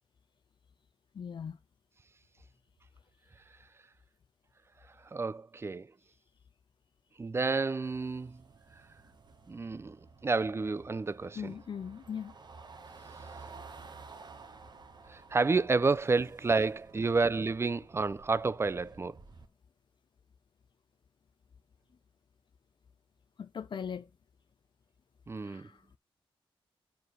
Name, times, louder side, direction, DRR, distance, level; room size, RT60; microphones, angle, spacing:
voice 1, 1.1-1.6 11.3-12.3 23.4-24.1 25.4-25.9, left 7 dB, 55° left, 0.4 m, -40 dB
voice 2, 5.1-5.9 7.2-8.4 9.5-10.0 10.2-11.5 15.1-19.2 25.3-25.7, right 4 dB, 25° right, 0.4 m, -30 dB
sound 1, 7.8-19.5, right 4 dB, 45° right, 1.2 m, -53 dB
7.7 x 4.6 x 6.2 m
wide cardioid pair, 95°, 10 cm